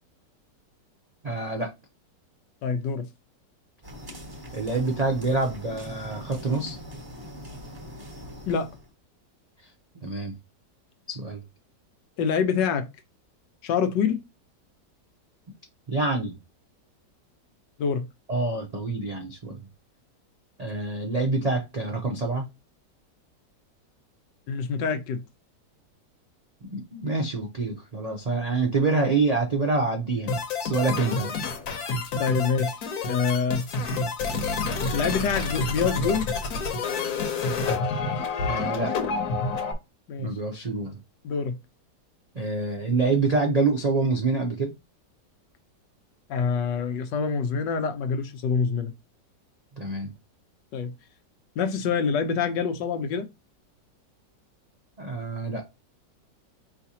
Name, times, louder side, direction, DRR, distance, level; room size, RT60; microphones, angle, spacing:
voice 1, 1.2-1.7 4.5-6.8 9.9-10.3 11.1-11.4 15.9-16.3 18.3-19.6 20.6-22.5 26.7-31.3 38.5-38.9 40.2-41.0 42.3-44.7 49.8-50.1 55.0-55.7, right 3 dB, 75° right, 0.3 m, -26 dB
voice 2, 2.6-3.1 8.5-8.7 12.2-12.9 13.6-14.2 17.8-18.1 24.5-25.2 32.2-33.7 34.9-36.3 40.1-40.3 41.2-41.6 46.3-48.9 50.7-50.9 51.6-53.3, left 6 dB, 90° left, 1.4 m, -26 dB
sound 1, 3.8-8.9, left 1 dB, 20° right, 0.6 m, -41 dB
sound 2, 30.3-39.7, left 4 dB, 65° left, 1.3 m, -28 dB
4.8 x 3.3 x 2.7 m
omnidirectional pair, 1.9 m